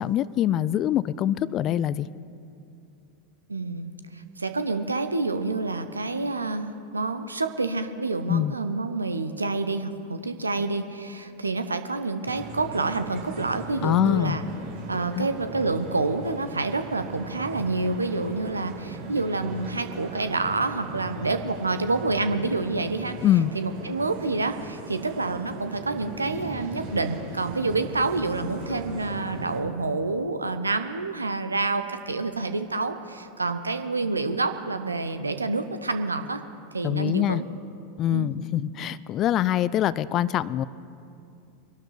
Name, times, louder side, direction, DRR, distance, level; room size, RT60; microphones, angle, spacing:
voice 1, 0.0-2.1 8.3-8.5 13.8-14.4 15.1-15.3 23.2-23.5 36.8-37.4 38.0-40.6, left 11 dB, 35° left, 19 dB, 0.4 m, -24 dB
voice 2, 3.5-14.4 14.9-23.2 23.5-36.4 36.7-37.4 38.1-38.3, right 3 dB, 85° right, 9 dB, 0.7 m, -28 dB
sound 1, 12.2-29.6, right 2 dB, 65° right, 4.3 m, -39 dB
24.0 x 12.0 x 3.3 m, 2.6 s
figure-of-eight pair, 85°, 0 cm